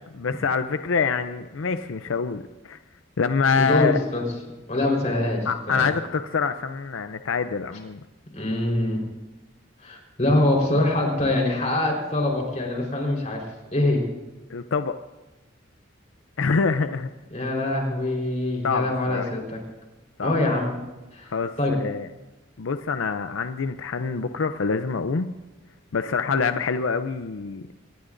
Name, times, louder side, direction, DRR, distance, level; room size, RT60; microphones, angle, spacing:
voice 1, 0.1-2.8 3.2-4.0 5.4-8.0 14.5-14.9 16.4-17.1 18.6-19.3 20.2-20.4 21.3-22.1 22.6-25.3 25.9-27.7, left 5 dB, 85° left, 9 dB, 0.5 m, -25 dB
voice 2, 3.6-4.2 4.7-5.4 5.8-5.9 8.3-9.0 9.8-13.4 13.7-14.0 17.3-19.6 20.2-20.7 21.1-21.3 21.6-21.7, left 1 dB, 35° left, 0 dB, 4.2 m, -24 dB
25.0 x 19.5 x 2.6 m, 1.1 s
head